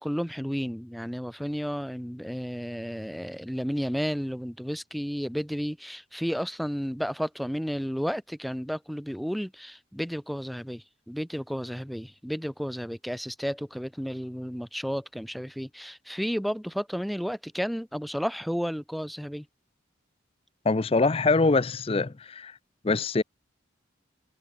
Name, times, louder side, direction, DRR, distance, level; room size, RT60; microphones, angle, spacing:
voice 1, 0.0-19.4, equal, ahead, 1.7 m, -32 dB
voice 2, 20.6-22.5 22.8-23.2, left 3 dB, 30° left, 0.5 m, -24 dB
head